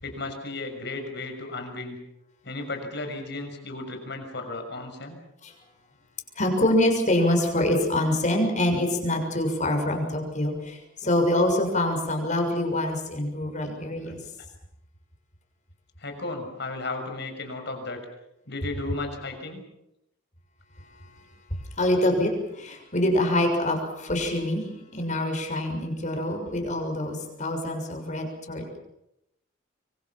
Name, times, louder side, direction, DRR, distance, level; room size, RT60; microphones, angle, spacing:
voice 1, 0.0-2.0 2.4-5.2 14.0-14.2 16.0-18.0 18.5-19.6, left 2 dB, 60° left, 5 dB, 6.3 m, -34 dB
voice 2, 6.4-14.2 21.8-22.3 22.6-24.6 24.9-28.8, left 1 dB, 40° left, 3 dB, 6.6 m, -25 dB
25.5 x 24.0 x 7.4 m, 0.83 s
head